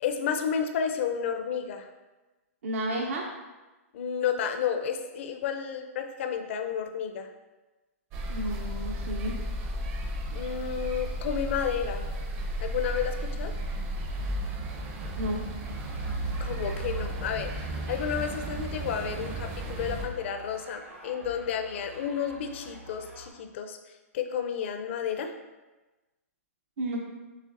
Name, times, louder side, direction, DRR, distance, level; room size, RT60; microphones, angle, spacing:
voice 1, 0.0-1.9 3.9-7.3 10.3-12.0 12.6-13.5 16.4-23.8 24.1-25.3, left 7 dB, 55° left, 7 dB, 0.5 m, -31 dB
voice 2, 2.6-3.2 8.3-9.3 15.2-15.4 26.8-27.0, right 1 dB, 65° right, 0 dB, 0.7 m, -31 dB
sound 1, 8.1-20.1, right 1 dB, 30° right, 0.6 m, -34 dB
sound 2, 15.6-23.3, right 2 dB, 85° right, 1.5 m, -48 dB
6.5 x 3.2 x 2.6 m, 1.1 s
hypercardioid pair, 150°, 8 cm